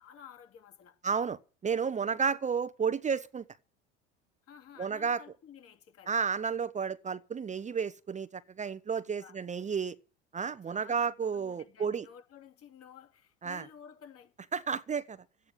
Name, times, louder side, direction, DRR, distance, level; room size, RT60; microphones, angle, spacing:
voice 1, 0.0-1.0 4.4-6.2 9.2-9.4 10.7-14.3, left 8 dB, 50° left, 2.8 m, -53 dB
voice 2, 1.0-3.4 4.8-5.2 6.1-10.0 10.3-12.0 13.4-13.7 14.5-15.2, right 6 dB, 25° right, 0.8 m, -32 dB
13.5 x 9.0 x 9.3 m
hypercardioid pair, 80°, 31 cm